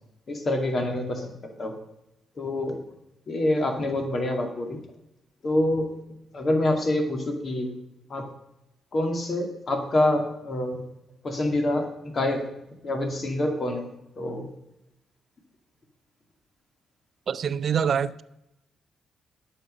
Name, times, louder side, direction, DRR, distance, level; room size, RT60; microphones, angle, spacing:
voice 1, 0.3-1.7 2.4-2.8 3.3-4.8 5.4-6.0 6.3-7.7 8.1-8.3 8.9-10.9 11.2-12.5 12.8-14.5, left 1 dB, 50° left, 2.2 m, -26 dB
voice 2, 17.3-18.2, right 7 dB, 60° right, 0.5 m, -25 dB
9.4 x 6.5 x 6.6 m
cardioid pair, 75°, 0 cm